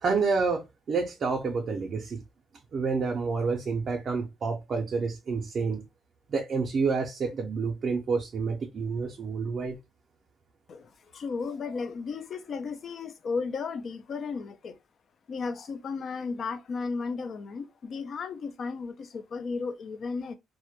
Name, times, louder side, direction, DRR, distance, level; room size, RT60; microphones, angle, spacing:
voice 1, 0.0-2.2 2.7-5.8 6.3-9.8, right 4 dB, 50° right, 0.4 m, -29 dB
voice 2, 10.7-14.8 15.3-20.4, left 4 dB, 55° left, 0.3 m, -34 dB
2.1 x 2.1 x 2.8 m
cardioid pair, 90°, 0 cm